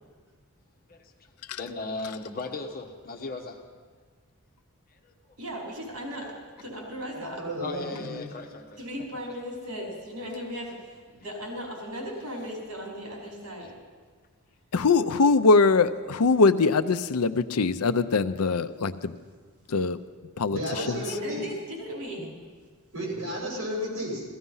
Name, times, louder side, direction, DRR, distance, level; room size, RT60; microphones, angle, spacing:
voice 1, 1.5-3.6 4.9-5.1 7.6-8.8 9.1-9.2 13.6-13.7, left 3 dB, 45° left, 4 dB, 1.3 m, -37 dB
voice 2, 5.4-7.4 8.8-13.8 20.7-22.3, equal, 85° right, -1 dB, 4.6 m, -37 dB
voice 3, 7.1-8.3 20.5-21.4 22.2-22.3 22.9-24.2, equal, 70° right, -2 dB, 5.5 m, -33 dB
voice 4, 14.7-19.1 19.7-20.0 20.4-20.6, left 4 dB, 85° left, 12 dB, 0.6 m, -22 dB
15.5 x 15.0 x 5.6 m, 1.5 s
head